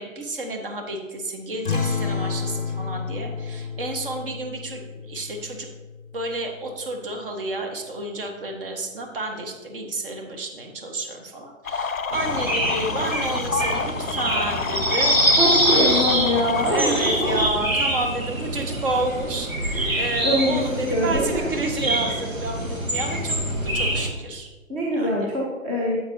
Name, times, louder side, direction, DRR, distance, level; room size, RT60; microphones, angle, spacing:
voice 1, 0.0-5.7 6.1-16.4 16.7-24.5 24.9-25.3, right 2 dB, 45° right, 3 dB, 1.5 m, -31 dB
sound 1, 1.6-6.7, left 5 dB, 40° left, 0.5 m, -30 dB
sound 2, 11.6-17.5, left 5 dB, 85° left, 0.6 m, -29 dB
sound 3, 12.1-24.1, right 1 dB, 85° right, 1.8 m, -25 dB
voice 2, 15.4-17.2 19.7-21.4 24.7-26.0, equal, 10° right, -5 dB, 0.6 m, -24 dB
9.4 x 7.7 x 2.8 m, 1.2 s
figure-of-eight pair, 130°, 40 cm